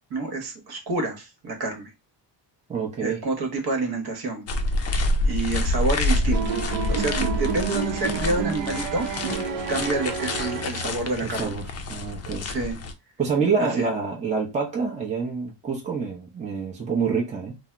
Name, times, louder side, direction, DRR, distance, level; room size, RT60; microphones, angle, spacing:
voice 1, 0.1-1.9 3.0-4.5 5.2-6.4 6.9-9.4 9.7-11.5 12.4-12.8 13.6-13.9, right 2 dB, 55° right, 1.0 m, -28 dB
voice 2, 2.7-3.2 11.2-11.6 11.9-12.5 13.2-17.6, right 5 dB, 15° right, 0.6 m, -27 dB
sound 1, 4.5-12.9, left 2 dB, 35° left, 0.4 m, -27 dB
sound 2, 6.3-11.2, right 6 dB, 80° right, 0.6 m, -30 dB
2.7 x 2.0 x 3.2 m
cardioid pair, 130°, 44 cm